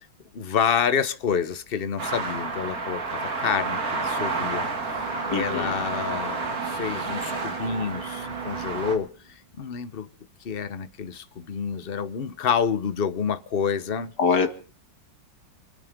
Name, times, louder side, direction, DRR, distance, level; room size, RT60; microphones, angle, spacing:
voice 1, 0.3-6.4 6.6-10.1 10.4-14.1, left 7 dB, 40° left, 13 dB, 0.9 m, -28 dB
sound 1, 2.0-8.9, right 3 dB, 50° right, 2.7 m, -30 dB
Bowed string instrument, 4.8-9.0, right 8 dB, 80° right, 3.2 m, -40 dB
voice 2, 5.3-5.7 14.2-14.5, left 5 dB, 60° left, 8 dB, 2.4 m, -23 dB
29.0 x 9.7 x 5.2 m, 0.42 s
omnidirectional pair, 2.0 m